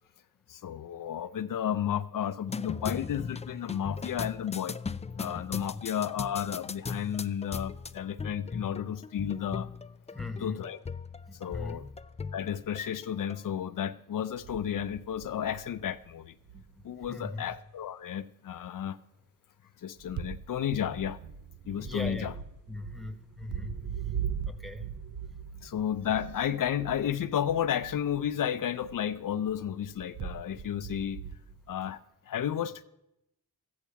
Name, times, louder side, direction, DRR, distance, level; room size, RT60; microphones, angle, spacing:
voice 1, 0.5-4.8 5.2-9.7 10.4-10.8 11.3-11.8 12.3-16.3 16.8-19.0 19.8-21.2 21.7-22.3 25.6-31.2 31.7-32.8, left 9 dB, 70° left, 12 dB, 0.5 m, -32 dB
sound 1, 2.5-13.4, left 5 dB, 20° left, 0.3 m, -39 dB
voice 2, 10.1-10.6 11.3-11.9 16.5-17.5 21.8-22.3 22.7-23.8 24.2-24.9 25.5-25.6, left 2 dB, ahead, 7 dB, 1.1 m, -41 dB
sound 2, 14.3-16.1 16.5-17.1 17.5-17.6 20.0-28.5 28.8-31.8, right 8 dB, 60° right, 0.7 m, -41 dB
13.5 x 8.6 x 5.7 m, 0.85 s
cardioid pair, 80°, 34 cm